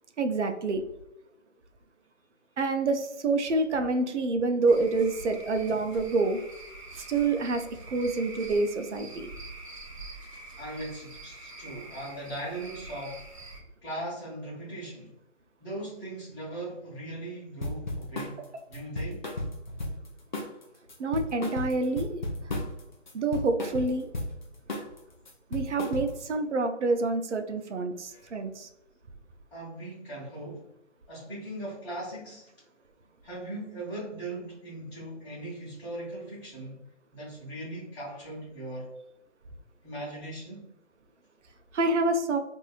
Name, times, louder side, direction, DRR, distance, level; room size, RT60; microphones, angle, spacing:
voice 1, 0.2-0.8 2.6-6.4 7.1-9.3 18.4-18.5 21.0-22.2 23.1-24.1 25.5-28.7 41.7-42.4, right 3 dB, 65° right, 6 dB, 0.6 m, -27 dB
Cricket / Frog, 4.7-13.6, right 2 dB, 25° right, 0.6 m, -45 dB
voice 2, 10.6-13.3 13.8-15.1 15.6-19.3 28.1-28.3 29.5-30.7 31.1-32.5 33.2-36.8 37.1-38.9 39.8-40.7, right 1 dB, 20° left, -13 dB, 1.2 m, -39 dB
sound 1, 17.6-18.4 18.7-20.1 20.3-20.6 20.9-22.8 23.1-24.3 24.7-25.0 25.3-26.3, left 1 dB, 40° left, 0.4 m, -34 dB
2.9 x 2.6 x 2.4 m, 0.84 s
figure-of-eight pair, 155°, 37 cm